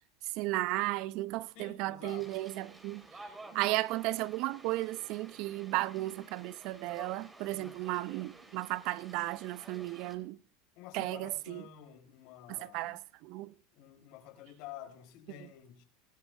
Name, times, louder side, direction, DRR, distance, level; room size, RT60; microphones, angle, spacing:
voice 1, 0.4-3.0 3.5-10.4 10.9-11.3 12.7-13.0 13.3-13.5, right 18 dB, 60° right, 0.7 m, -34 dB
voice 2, 1.5-2.4 7.4-7.8 10.8-13.1 13.7-15.8, left 11 dB, 60° left, 4.4 m, -50 dB
sound 1, 2.0-10.2, right 2 dB, 15° right, 4.0 m, -53 dB
23.0 x 13.5 x 3.4 m
supercardioid pair, 105°, 0 cm